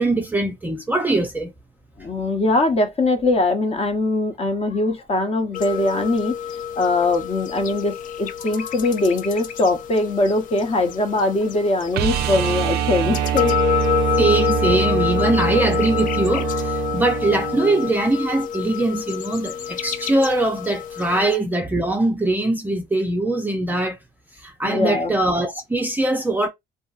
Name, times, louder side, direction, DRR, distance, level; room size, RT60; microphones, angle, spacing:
voice 1, 0.0-1.5 14.2-24.0 24.4-26.5, right 2 dB, 10° right, 0.5 m, -22 dB
voice 2, 2.0-6.3 6.8-13.6 21.1-21.2 24.6-25.1, left 2 dB, 35° left, 0.9 m, -21 dB
sound 1, 5.5-21.4, left 9 dB, 50° left, 0.4 m, -27 dB
sound 2, 11.9-17.9 20.4-20.5, right 8 dB, 70° right, 0.4 m, -24 dB
2.7 x 2.7 x 2.4 m
cardioid pair, 110°, 17 cm